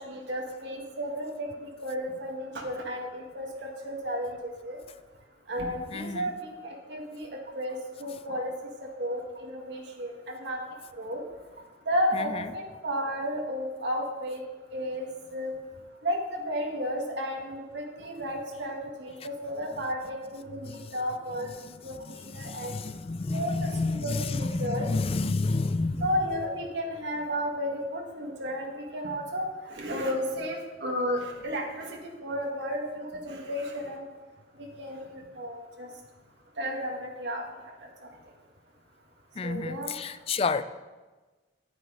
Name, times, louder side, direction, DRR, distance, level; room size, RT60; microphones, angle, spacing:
voice 1, 0.0-4.8 5.5-7.3 7.6-8.5 9.0-10.6 11.0-11.2 11.9-14.4 14.7-15.5 16.0-21.5 21.8-22.7 23.3-24.9 26.0-28.6 28.9-29.5 29.7-34.1 34.6-35.9 36.6-37.4 39.4-40.0, equal, 60° right, 1.6 m, -33 dB
voice 2, 5.9-6.2 12.1-12.4 20.7-20.9 22.1-26.1 39.4-40.6, left 3 dB, 30° left, 0.3 m, -30 dB
9.3 x 9.3 x 5.0 m
head